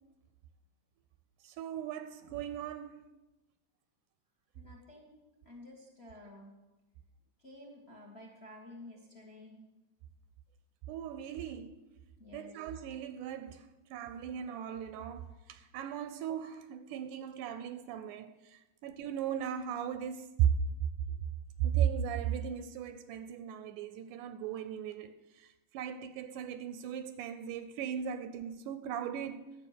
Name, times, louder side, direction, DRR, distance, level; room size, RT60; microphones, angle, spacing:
voice 1, 1.4-3.0 10.9-11.8 12.3-20.5 21.6-29.6, right 9 dB, 80° right, 2.0 m, -37 dB
voice 2, 4.5-6.5 7.4-9.6 12.2-12.7 13.2-13.3 28.2-28.3, left 2 dB, 35° left, 1.0 m, -52 dB
11.5 x 7.9 x 6.5 m
omnidirectional pair, 3.7 m